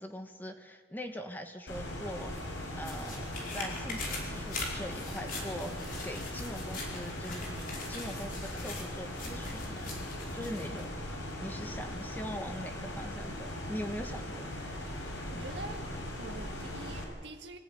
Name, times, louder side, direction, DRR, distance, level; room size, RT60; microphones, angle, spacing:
voice 1, 0.0-2.3 2.8-3.2 3.5-7.5 7.9-9.9 10.3-10.9 11.4-14.8, equal, 10° left, 5 dB, 1.7 m, -42 dB
sound 1, 1.7-17.0, left 1 dB, 80° left, 5.9 m, -39 dB
sound 2, 2.1-10.9 11.3-11.4, left 3 dB, 50° left, 5.0 m, -43 dB
voice 2, 15.3-15.9 16.2-17.6, right 2 dB, 65° right, 4 dB, 1.7 m, -45 dB
25.5 x 15.0 x 9.3 m, 1.5 s
head